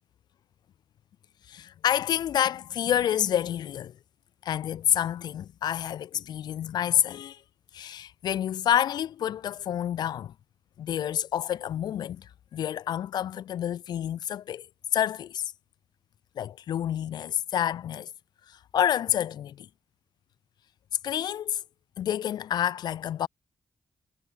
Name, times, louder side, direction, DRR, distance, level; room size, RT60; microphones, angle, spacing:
voice 1, 1.5-3.9 4.4-7.4 7.7-10.3 10.8-14.7 14.9-15.5 16.4-18.1 18.5-19.7 21.0-21.6 22.0-23.3, left 10 dB, 85° left, 2.4 m, -28 dB
supercardioid pair, 50°, 7 cm